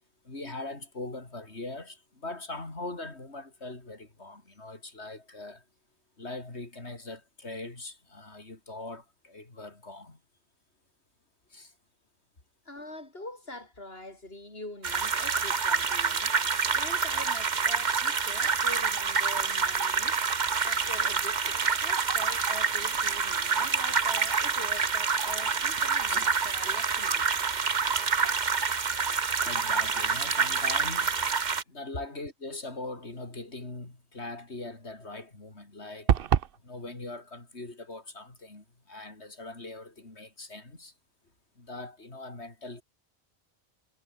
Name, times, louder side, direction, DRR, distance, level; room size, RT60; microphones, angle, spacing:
voice 1, 0.2-5.6 6.2-10.2 11.5-11.7 26.1-26.3 29.3-31.2 31.7-36.2 36.6-40.9 41.6-42.8, left 2 dB, 80° left, 4.7 m, -41 dB
voice 2, 12.7-16.3 16.7-20.2 20.6-27.5, left 2 dB, 65° left, 5.8 m, -44 dB
sound 1, 14.8-31.6, right 5 dB, 45° right, 1.2 m, -27 dB
sound 2, 36.1-36.6, right 9 dB, 60° right, 0.9 m, -23 dB
omnidirectional pair, 1.1 m